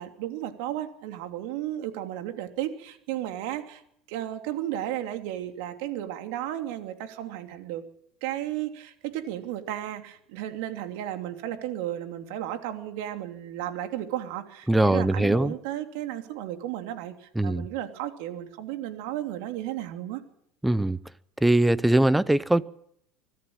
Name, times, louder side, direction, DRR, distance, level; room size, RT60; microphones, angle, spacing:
voice 1, 0.0-3.8 4.1-7.8 8.2-20.2, right 12 dB, 75° right, 3.0 m, -34 dB
voice 2, 14.7-15.5 17.4-17.7 20.6-21.0 21.4-22.6, right 1 dB, 5° right, 0.8 m, -21 dB
24.5 x 14.5 x 8.9 m
supercardioid pair, 120°, 0 cm